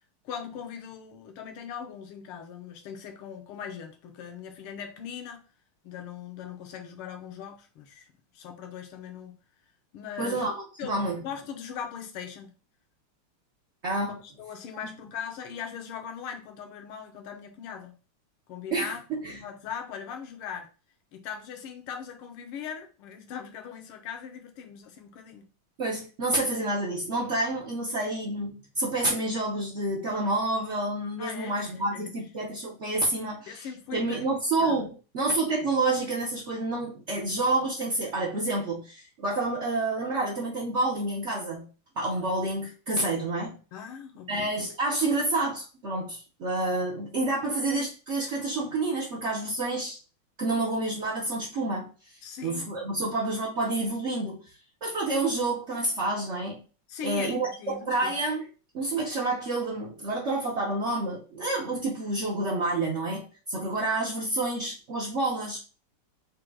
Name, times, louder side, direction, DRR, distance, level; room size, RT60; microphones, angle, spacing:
voice 1, 0.3-5.4 5.8-9.4 9.9-10.5 10.8-10.9 11.2-12.5 14.1-18.0 18.5-19.0 19.3-20.7 21.1-25.5 31.2-32.1 33.5-34.3 34.6-34.8 43.5-44.5 52.2-52.7 56.9-58.2, left 7 dB, 85° left, 1.7 m, -40 dB
voice 2, 10.2-10.6 10.8-11.2 13.8-14.2 18.7-19.4 25.8-33.7 33.9-41.7 42.0-43.6 44.3-50.0 50.4-54.4 54.8-56.6 57.0-58.5 58.7-65.6, right 2 dB, 90° right, 0.6 m, -29 dB
5.1 x 2.3 x 4.5 m
omnidirectional pair, 2.4 m